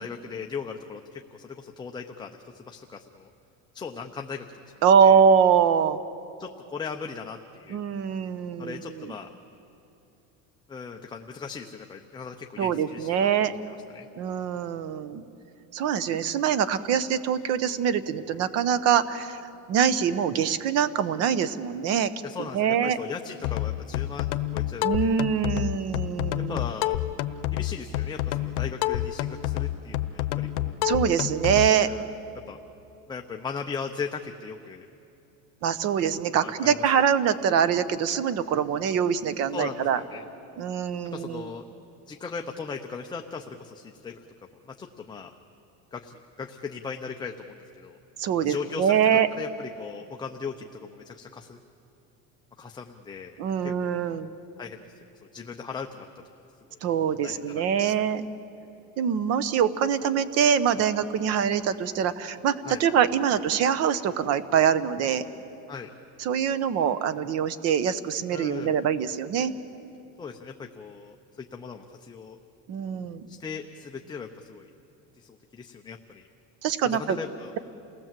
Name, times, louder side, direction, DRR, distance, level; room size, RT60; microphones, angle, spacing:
voice 1, 0.0-3.3 3.7-4.5 4.8-5.2 6.4-7.8 8.6-9.3 10.7-14.1 22.2-25.2 26.5-27.0 27.5-30.8 31.9-32.1 32.5-32.6 33.1-34.9 36.4-36.7 39.5-40.2 41.0-41.6 42.1-44.2 44.7-45.3 45.9-48.0 48.4-49.0 49.4-51.6 52.6-53.4 53.6-54.2 54.6-54.9 55.3-56.1 56.7-56.8 57.2-57.9 62.7-62.8 65.7-65.9 68.3-68.7 70.2-72.4 73.3-74.7 75.2-76.2 76.8-77.5, left 5 dB, 10° left, 3 dB, 0.7 m, -38 dB
voice 2, 4.8-6.0 7.7-9.1 12.6-13.5 14.2-15.2 15.7-19.4 19.7-22.1 22.5-23.0 24.8-26.6 30.8-31.9 35.6-40.0 40.6-41.5 48.2-49.3 53.4-54.3 56.8-58.2 59.0-65.2 66.2-69.5 72.7-73.3 76.6-77.2, right 8 dB, 45° right, 14 dB, 1.0 m, -24 dB
sound 1, 23.4-31.7, left 15 dB, 75° left, 1.0 m, -28 dB
28.5 x 18.5 x 7.5 m, 2.8 s
cardioid pair, 150°, 35 cm